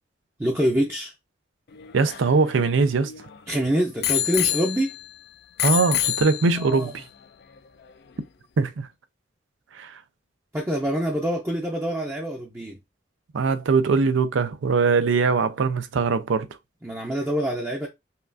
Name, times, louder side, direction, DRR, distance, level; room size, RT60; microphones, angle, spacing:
voice 1, 0.4-1.1 3.5-4.9 6.6-6.9 10.5-12.8 16.8-17.9, equal, 10° right, 0.5 m, -25 dB
Bicycle bell, 1.7-3.4 4.0-5.2 5.6-6.8 7.6-7.7, left 13 dB, 55° left, 0.4 m, -27 dB
voice 2, 1.9-3.1 5.6-7.0 8.6-8.9 9.7-10.0 13.3-16.5, right 4 dB, 80° right, 0.5 m, -21 dB
5.4 x 2.4 x 2.5 m
head